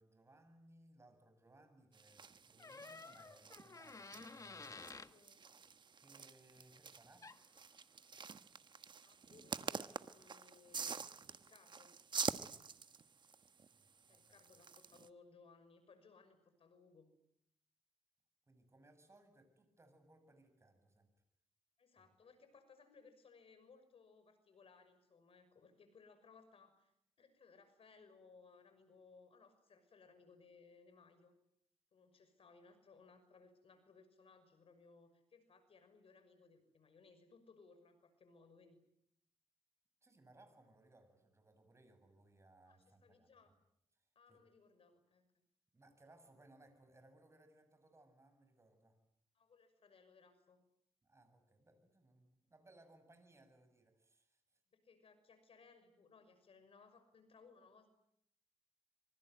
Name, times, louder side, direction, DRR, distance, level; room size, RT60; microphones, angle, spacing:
voice 1, 0.0-4.7 6.0-7.3 13.0-13.1 13.7-14.5 18.5-21.1 22.0-22.1 40.0-43.3 43.9-44.4 45.7-49.0 51.0-54.6, right 2 dB, 25° right, 8 dB, 7.3 m, -66 dB
sound 1, 1.9-15.1, right 5 dB, 45° right, 1.3 m, -47 dB
sound 2, 2.6-5.1 7.2-7.4, left 4 dB, 30° left, 1.3 m, -52 dB
voice 2, 4.6-5.4 9.0-12.0 14.1-17.2 21.8-26.9 27.2-31.3 31.9-38.8 42.6-43.5 44.1-45.3 49.3-50.7 54.7-57.9, left 4 dB, 60° left, 9 dB, 6.2 m, -64 dB
26.0 x 24.5 x 9.3 m, 0.73 s
cardioid pair, 105°, 11 cm